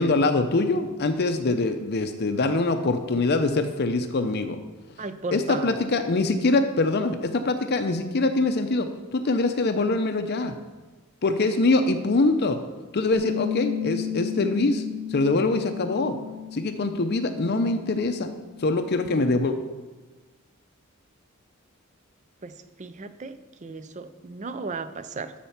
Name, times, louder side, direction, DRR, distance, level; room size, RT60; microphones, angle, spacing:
voice 1, 0.0-4.6 5.3-10.5 11.2-12.6 12.9-14.8 15.1-16.2 16.5-18.3 18.6-19.6, left 3 dB, 50° left, 7 dB, 0.6 m, -24 dB
voice 2, 5.0-5.8 22.4-22.5 22.8-23.3 23.6-25.5, right 4 dB, 35° right, 11 dB, 0.5 m, -35 dB
Bass guitar, 13.1-19.4, left 9 dB, 70° right, 0.8 m, -34 dB
12.5 x 4.3 x 5.8 m, 1.2 s
head